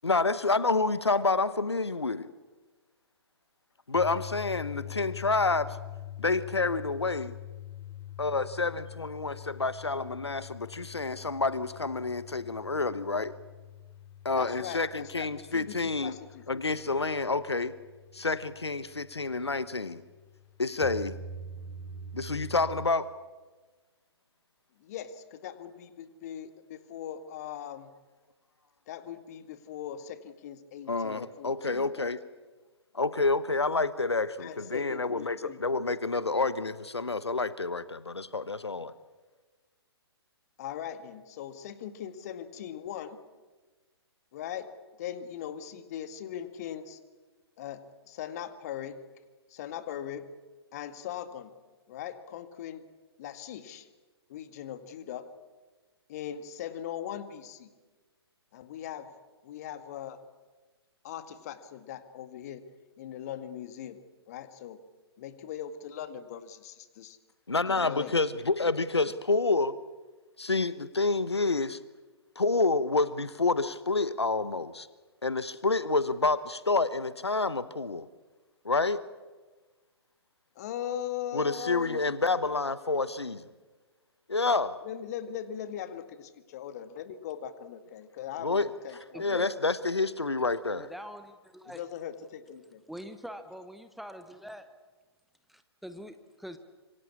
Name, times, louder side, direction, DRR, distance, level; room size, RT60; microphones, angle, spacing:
voice 1, 0.0-2.3 3.9-5.8 6.2-7.4 8.2-13.3 14.2-16.1 16.5-17.7 18.1-20.0 20.6-21.2 22.1-23.1 30.9-32.2 32.9-38.9 67.5-69.7 70.4-71.8 72.4-74.9 75.2-78.1 78.6-79.0 81.3-83.5 84.3-84.8 88.4-88.7 89.2-90.9, left 3 dB, 75° left, 16 dB, 1.1 m, -28 dB
sound 1, 3.9-22.9, left 5 dB, 20° left, 3.0 m, -45 dB
voice 2, 14.4-16.4 24.8-27.9 28.9-32.1 34.4-35.8 40.6-43.2 44.3-44.7 45.0-47.0 47.6-49.0 49.5-50.2 50.7-51.5 51.9-52.8 53.2-53.9 54.3-55.3 56.1-57.7 58.5-59.1 59.4-60.2 61.0-62.6 63.0-64.0 64.3-64.8 65.2-67.2 67.7-68.1 80.6-82.0 84.8-89.5 91.7-92.8, left 10 dB, 35° left, 11 dB, 1.9 m, -40 dB
voice 3, 89.1-89.5 90.8-91.8 92.9-94.7 95.5-96.6, equal, ahead, 9 dB, 1.0 m, -44 dB
26.0 x 24.0 x 8.5 m, 1.3 s
figure-of-eight pair, 125°, 14 cm